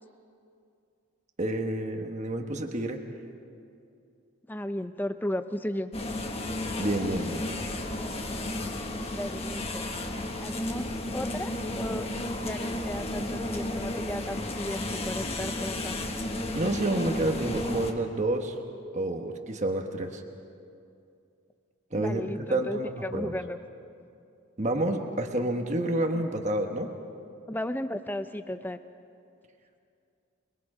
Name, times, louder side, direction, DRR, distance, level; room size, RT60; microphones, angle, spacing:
voice 1, 1.4-3.0 6.8-7.4 16.5-18.5 18.9-20.2 21.9-23.4 24.6-26.9, right 1 dB, 35° right, 4 dB, 1.3 m, -29 dB
voice 2, 4.5-5.9 9.1-9.9 10.4-12.1 12.4-16.0 21.9-23.6 26.1-26.2 27.5-28.8, left 1 dB, 10° left, 10 dB, 0.6 m, -35 dB
sound 1, 5.9-17.9, left 1 dB, 25° left, 1.4 m, -33 dB
29.0 x 21.5 x 5.0 m, 2.5 s
head